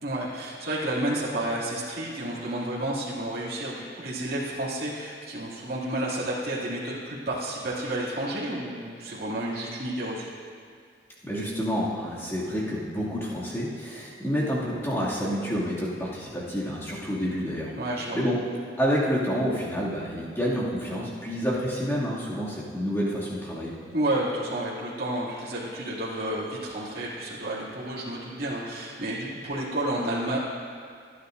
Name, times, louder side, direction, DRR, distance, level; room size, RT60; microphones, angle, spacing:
voice 1, 0.0-10.3 17.8-18.2 23.9-30.4, right 1 dB, 50° right, -8 dB, 2.6 m, -31 dB
voice 2, 11.2-17.7 18.1-18.4 18.8-23.7, equal, 15° left, -7 dB, 2.3 m, -28 dB
27.5 x 9.9 x 2.6 m, 2.1 s
head